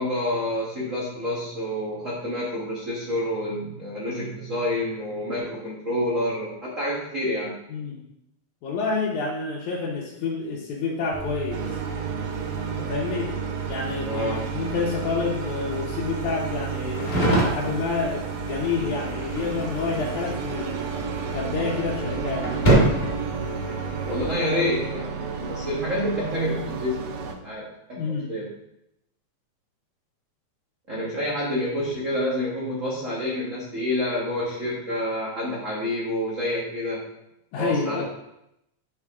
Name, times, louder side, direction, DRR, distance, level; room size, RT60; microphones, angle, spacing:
voice 1, 0.0-7.5 14.1-14.4 24.1-28.0 28.3-28.5 30.9-37.0 37.6-38.0, left 1 dB, 40° right, -5 dB, 1.2 m, -28 dB
voice 2, 7.7-8.0 8.6-11.6 12.8-13.3 13.7-20.8 21.3-22.5 27.9-28.3 37.5-38.0, left 4 dB, 85° left, -5 dB, 2.5 m, -28 dB
sound 1, 11.1-24.3, right 2 dB, 20° left, 1.3 m, -28 dB
sound 2, 11.5-27.3, right 5 dB, 75° right, 1.3 m, -34 dB
9.5 x 4.6 x 3.6 m, 0.83 s
omnidirectional pair, 3.3 m